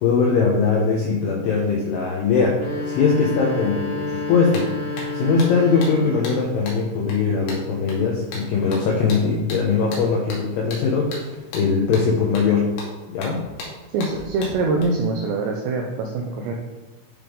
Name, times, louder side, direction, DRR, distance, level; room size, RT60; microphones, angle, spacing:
voice 1, 0.0-12.7 13.1-13.5, left 5 dB, 85° left, -1 dB, 2.3 m, -21 dB
sound 1, 2.5-6.5, left 3 dB, 45° left, 1.7 m, -30 dB
sound 2, 4.1-4.2 4.5-14.8, left 2 dB, 70° left, 3.4 m, -37 dB
sound 3, 4.8-11.6, right 2 dB, 45° right, 2.2 m, -40 dB
voice 2, 13.9-16.5, right 3 dB, 85° right, 2 dB, 2.5 m, -24 dB
10.0 x 3.5 x 3.7 m, 1.2 s
omnidirectional pair, 5.6 m